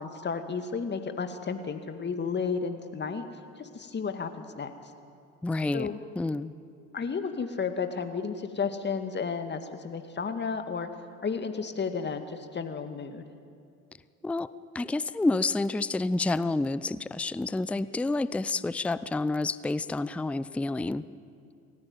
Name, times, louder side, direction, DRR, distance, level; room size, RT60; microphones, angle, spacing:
voice 1, 0.0-3.2 3.6-4.7 5.7-6.0 6.9-10.9 11.2-13.2, left 5 dB, 25° left, 7 dB, 2.2 m, -32 dB
voice 2, 5.4-5.9 6.2-6.5 14.2-21.1, left 2 dB, 5° left, 16 dB, 0.5 m, -29 dB
28.0 x 15.0 x 9.3 m, 2.5 s
figure-of-eight pair, 65°, 43 cm